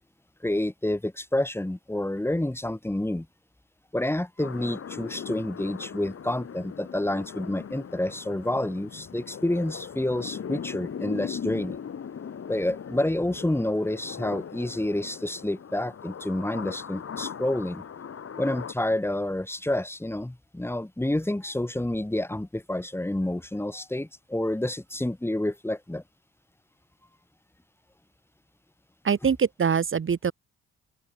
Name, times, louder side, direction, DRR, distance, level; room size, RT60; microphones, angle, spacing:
voice 1, 0.4-3.3 3.9-11.8 12.5-17.8 18.4-26.0, left 1 dB, 10° left, 6.5 m, -29 dB
sound 1, 4.4-18.7, left 7 dB, 50° left, 5.9 m, -39 dB
voice 2, 29.0-30.3, right 6 dB, 40° right, 3.4 m, -24 dB
open air
cardioid pair, 90°, 30 cm